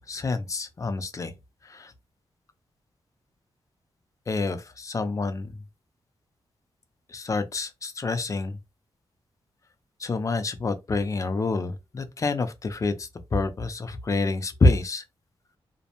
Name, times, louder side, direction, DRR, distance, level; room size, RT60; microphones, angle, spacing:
voice 1, 0.1-1.3 1.6-1.9 4.3-5.5 7.1-8.6 10.0-15.0, left 3 dB, 35° left, 0.4 m, -27 dB
2.5 x 2.0 x 2.8 m
wide cardioid pair, 135°, 10 cm